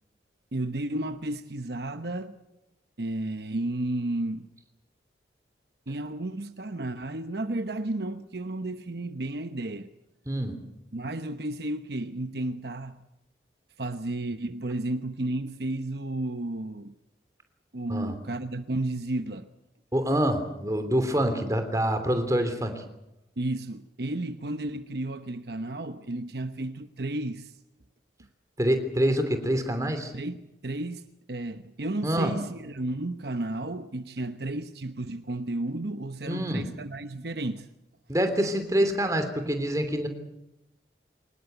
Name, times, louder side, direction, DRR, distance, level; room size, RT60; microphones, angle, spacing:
voice 1, 0.5-2.3 3.0-4.5 5.9-9.9 10.9-13.0 13.8-16.9 17.7-19.5 23.4-27.6 30.1-37.7, right 2 dB, 65° right, 1.0 m, -32 dB
voice 2, 19.9-22.8 28.6-30.1 32.0-32.3 36.3-36.7 38.1-40.1, equal, 20° right, 3.1 m, -26 dB
24.5 x 20.0 x 8.0 m
head